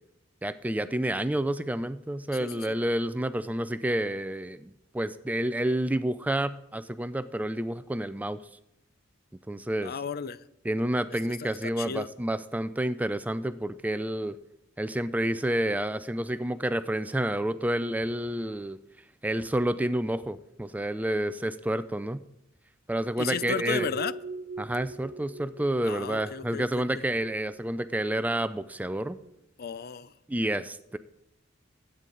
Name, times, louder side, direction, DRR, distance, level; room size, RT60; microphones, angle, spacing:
voice 1, 0.4-8.4 9.5-9.9 10.6-14.4 14.8-18.8 19.2-22.2 22.9-23.9 24.6-29.2 30.3-31.0, right 1 dB, 10° right, 13 dB, 0.4 m, -29 dB
voice 2, 2.4-2.8 9.8-10.4 11.1-12.1 23.2-24.1 25.8-26.9 29.6-30.1, left 6 dB, 50° left, 16 dB, 0.5 m, -34 dB
sound 1, 23.2-29.3, right 4 dB, 55° right, 0.8 m, -41 dB
22.5 x 9.1 x 3.9 m, 0.84 s
head